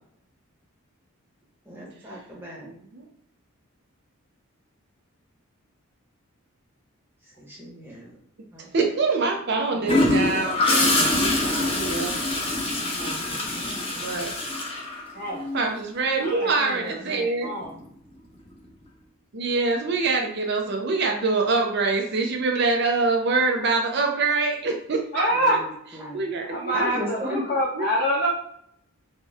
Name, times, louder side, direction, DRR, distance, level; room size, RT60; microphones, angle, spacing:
voice 1, 1.7-2.7 7.4-8.2 8.5-8.7 9.7-10.0 13.4-14.2 25.3-25.7 25.9-26.2 26.7-27.4, equal, 10° right, -3 dB, 1.0 m, -36 dB
voice 2, 2.6-3.1 8.6-14.4 15.5-17.5 19.3-25.3 26.1-26.8 27.3-27.4 27.7-27.9, right 3 dB, 50° right, 2 dB, 0.5 m, -25 dB
Gurgling / Toilet flush, 9.9-15.6 17.6-17.9, left 2 dB, 25° left, 0.8 m, -24 dB
voice 3, 15.1-15.4 16.2-17.7 25.1-25.6 26.4-28.3, equal, 40° left, -4 dB, 1.3 m, -26 dB
4.3 x 2.2 x 3.4 m, 0.69 s
head